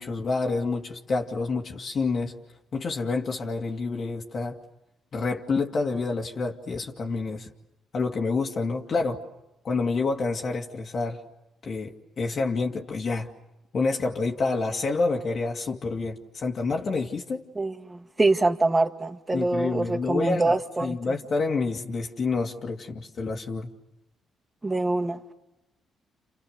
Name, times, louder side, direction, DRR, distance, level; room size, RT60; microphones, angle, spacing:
voice 1, 0.0-2.4 2.7-4.6 5.1-7.5 7.9-9.2 9.6-11.2 11.6-13.3 13.7-17.4 19.3-23.7, left 3 dB, 50° left, 2.5 m, -28 dB
voice 2, 17.6-21.2 24.6-25.2, right 2 dB, 20° right, 2.1 m, -25 dB
30.0 x 29.5 x 6.7 m
cardioid pair, 90°, 0 cm